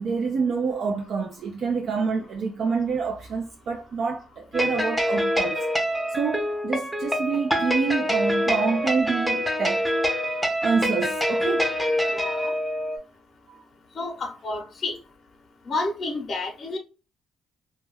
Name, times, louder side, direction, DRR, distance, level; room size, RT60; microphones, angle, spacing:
voice 1, 0.0-5.6 6.1-9.9 10.6-11.7 13.5-13.6, right 5 dB, 65° right, 0.3 m, -27 dB
sound 1, 4.5-13.0, equal, ahead, 0.6 m, -25 dB
voice 2, 12.1-12.5 14.0-15.0 15.7-16.8, left 2 dB, 45° left, 0.5 m, -30 dB
2.2 x 2.1 x 3.3 m
cardioid pair, 90°, 0 cm